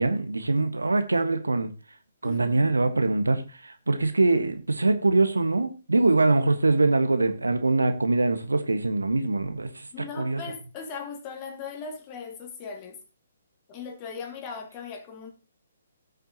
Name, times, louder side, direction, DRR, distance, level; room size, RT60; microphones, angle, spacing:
voice 1, 0.0-1.7 2.2-9.9 10.1-10.4, right 3 dB, 80° right, 1.4 m, -23 dB
voice 2, 9.9-13.0 13.7-15.3, left 5 dB, 30° left, 2.3 m, -38 dB
17.5 x 6.6 x 2.9 m
figure-of-eight pair, 130°, 0 cm